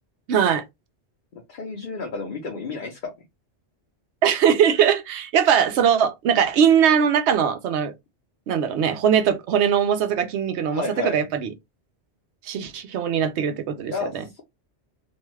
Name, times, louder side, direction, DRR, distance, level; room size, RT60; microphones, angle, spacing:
voice 1, 0.3-0.6 4.2-7.9 8.5-11.5 12.4-14.2, right 8 dB, 75° right, 0.9 m, -21 dB
voice 2, 1.3-3.3 10.7-11.2 13.9-14.4, left 4 dB, 55° left, 0.7 m, -31 dB
2.7 x 2.3 x 3.1 m
omnidirectional pair, 1.2 m